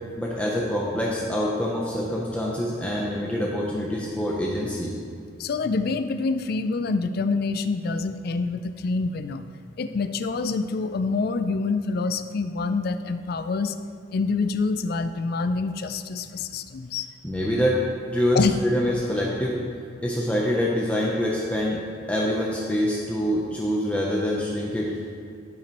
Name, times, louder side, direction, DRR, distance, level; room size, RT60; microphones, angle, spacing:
voice 1, 0.2-4.9 17.2-17.8 18.1-19.6 20.0-21.8 22.1-24.9, equal, 5° left, -4 dB, 0.6 m, -25 dB
voice 2, 5.4-9.4 9.8-13.8 14.1-17.1 18.3-18.5, left 4 dB, 50° left, 10 dB, 0.3 m, -26 dB
13.0 x 5.9 x 3.0 m, 2.3 s
head